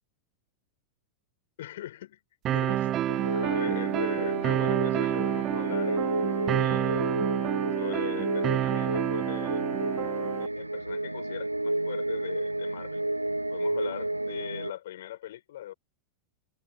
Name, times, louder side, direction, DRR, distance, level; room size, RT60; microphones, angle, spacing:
voice 1, 1.6-2.2 2.5-6.0 6.6-7.3 7.8-9.8 10.4-13.0 13.5-15.7, left 13 dB, 55° left, 7.6 m, -41 dB
sound 1, 2.4-10.5, right 12 dB, 30° right, 0.6 m, -29 dB
sound 2, 3.1-14.7, right 1 dB, 85° right, 3.0 m, -31 dB
figure-of-eight pair, 90°, 0 cm